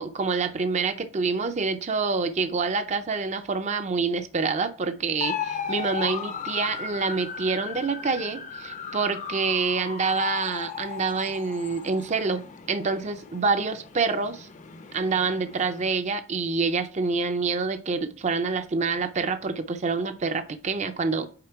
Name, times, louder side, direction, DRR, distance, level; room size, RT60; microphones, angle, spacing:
voice 1, 0.0-14.5 14.9-21.3, right 4 dB, 35° right, 9 dB, 0.5 m, -27 dB
sound 1, 5.2-15.9, left 6 dB, 35° left, 0.5 m, -36 dB
8.7 x 3.6 x 4.5 m, 0.39 s
head